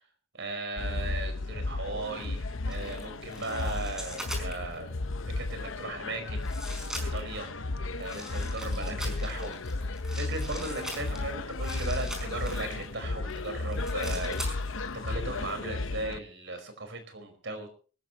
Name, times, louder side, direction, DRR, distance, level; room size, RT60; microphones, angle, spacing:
voice 1, 0.3-4.9 5.2-6.5 7.0-7.5 8.0-14.7 15.0-17.7, right 2 dB, 60° right, 6 dB, 5.1 m, -37 dB
sound 1, 0.8-16.2, left 2 dB, 70° left, 0.9 m, -34 dB
sound 2, 2.7-4.8 5.6-5.7 6.4-7.4 8.0-12.8 13.3-15.1 15.3-15.5, equal, 5° right, 5.0 m, -42 dB
24.5 x 14.0 x 3.1 m, 0.39 s
head